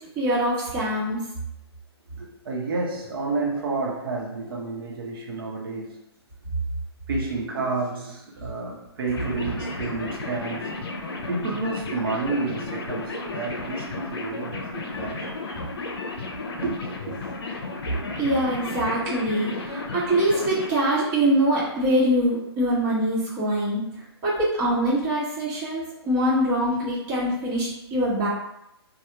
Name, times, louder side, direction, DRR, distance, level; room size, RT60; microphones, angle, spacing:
voice 1, 0.1-1.2 18.2-23.8 24.2-28.3, right 1 dB, 25° right, -9 dB, 1.2 m, -23 dB
voice 2, 2.2-6.0 7.1-10.8 11.3-15.3 16.6-16.7 17.1-17.2, right 3 dB, 55° right, -1 dB, 1.0 m, -30 dB
sound 1, 9.1-20.7, left 3 dB, 65° left, 0.7 m, -33 dB
3.3 x 2.3 x 2.9 m, 0.83 s
figure-of-eight pair, 130°, 14 cm